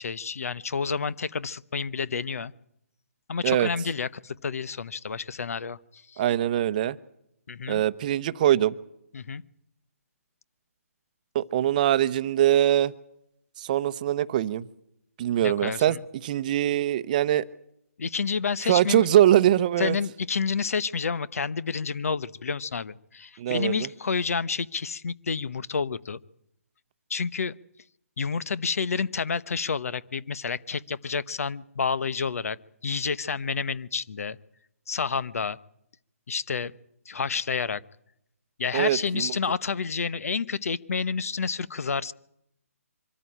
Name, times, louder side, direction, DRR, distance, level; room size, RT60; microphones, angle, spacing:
voice 1, 0.0-2.5 3.3-6.2 7.5-7.8 9.1-9.4 15.4-16.0 18.0-19.1 19.8-26.2 27.1-27.6 28.2-32.6 32.8-34.4 34.9-35.6 36.3-36.7 37.1-37.8 38.6-42.1, left 5 dB, 70° left, 19 dB, 1.0 m, -29 dB
voice 2, 6.2-7.0 7.7-8.8 11.3-12.9 13.6-14.7 15.2-17.4 18.6-20.0 23.4-23.9 38.7-39.3, right 12 dB, 30° right, 15 dB, 0.8 m, -23 dB
24.5 x 14.0 x 10.0 m, 0.76 s
hypercardioid pair, 155°, 8 cm